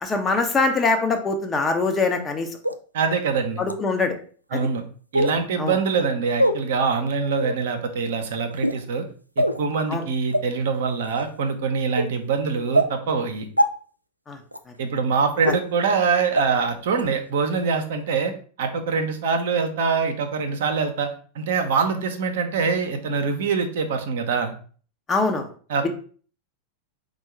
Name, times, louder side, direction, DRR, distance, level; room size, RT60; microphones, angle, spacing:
voice 1, 0.0-2.5 3.6-4.2 4.5-4.6 5.6-5.7 9.9-10.0 14.3-14.4 15.5-15.6 25.1-25.5, left 3 dB, 20° left, 5 dB, 0.8 m, -23 dB
sound 1, 2.6-2.7 3.6-3.7 5.1-5.4 6.4-6.5 7.3-7.6 8.5-8.8 9.4-9.6 10.3-10.4 11.0-11.2 12.0-12.1 12.7-12.9 13.6-13.7 14.5-14.6 15.4-15.5 16.4-16.5 17.0-17.1, right 1 dB, 90° right, 0.3 m, -21 dB
voice 2, 2.9-3.6 4.5-4.8 5.1-9.0 9.4-13.5 14.8-18.3 18.6-21.1 21.3-24.5 25.7-25.9, right 5 dB, 55° right, 6 dB, 0.7 m, -24 dB
4.4 x 2.3 x 4.5 m, 0.43 s
figure-of-eight pair, 90°, 0 cm